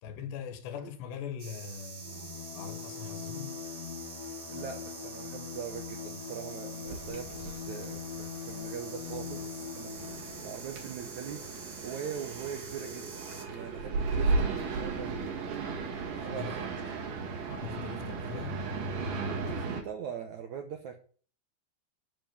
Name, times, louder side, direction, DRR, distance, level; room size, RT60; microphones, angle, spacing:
voice 1, 0.0-3.6 16.3-16.5 17.5-18.6, left 6 dB, 85° left, 3.7 m, -41 dB
sound 1, 1.4-13.4, right 4 dB, 30° right, 2.4 m, -46 dB
Bowed string instrument, 2.0-10.6, left 8 dB, 65° left, 2.9 m, -42 dB
voice 2, 4.5-10.1 10.4-11.4 11.8-15.3 16.1-17.1 19.4-21.0, right 8 dB, 75° right, 1.7 m, -42 dB
sound 2, 6.9-19.8, right 3 dB, 55° right, 3.2 m, -35 dB
12.5 x 5.9 x 7.1 m
omnidirectional pair, 4.8 m